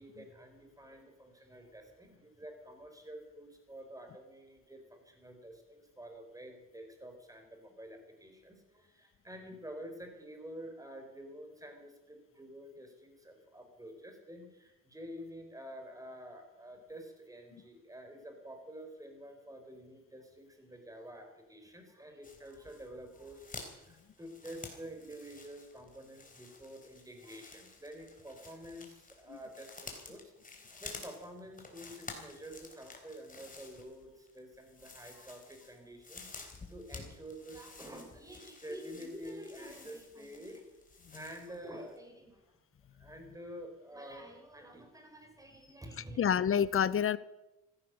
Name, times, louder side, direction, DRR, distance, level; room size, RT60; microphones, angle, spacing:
voice 1, 0.0-40.6 41.1-42.5 43.0-46.2, equal, 10° right, 5 dB, 4.4 m, -49 dB
sound 1, 22.2-41.7 42.0-42.1, left 3 dB, 25° left, 3.7 m, -51 dB
voice 2, 46.2-47.2, left 8 dB, 45° left, 18 dB, 0.7 m, -28 dB
15.5 x 13.0 x 6.4 m, 0.98 s
cardioid pair, 90°, 30 cm